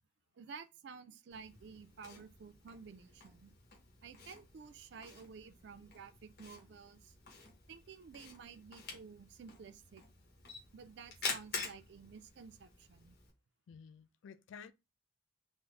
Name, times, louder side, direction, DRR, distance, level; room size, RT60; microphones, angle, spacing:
voice 1, 0.4-3.5 4.0-7.1 7.7-10.0 10.7-13.2, right 5 dB, 55° right, 0.3 m, -52 dB
Camera, 1.3-13.3, left 4 dB, 50° left, 1.0 m, -48 dB
voice 2, 13.7-14.7, left 6 dB, 75° left, 0.3 m, -53 dB
3.7 x 2.0 x 3.1 m
head